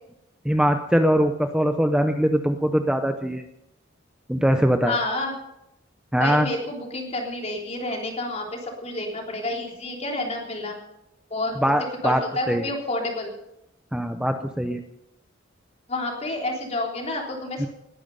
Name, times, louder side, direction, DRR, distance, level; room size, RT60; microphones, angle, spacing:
voice 1, 0.4-3.4 4.3-5.0 6.1-6.5 11.6-12.7 13.9-14.8 17.6-17.7, equal, 5° right, 7 dB, 0.6 m, -22 dB
voice 2, 4.9-5.3 6.2-10.8 11.3-11.5 12.0-13.3 15.9-17.7, left 2 dB, 35° left, 0 dB, 3.6 m, -29 dB
20.0 x 10.5 x 5.4 m, 0.84 s
head